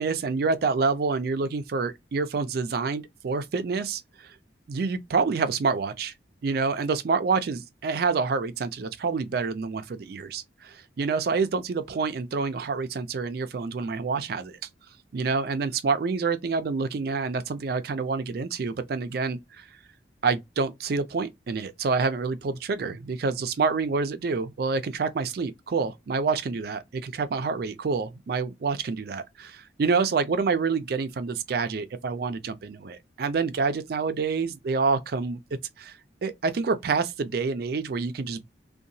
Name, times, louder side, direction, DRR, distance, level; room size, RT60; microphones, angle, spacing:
voice 1, 0.0-4.4 4.7-6.1 6.4-14.6 15.1-19.7 20.2-35.4 35.8-38.4, right 4 dB, 55° right, 0.4 m, -27 dB
2.7 x 2.2 x 2.6 m
head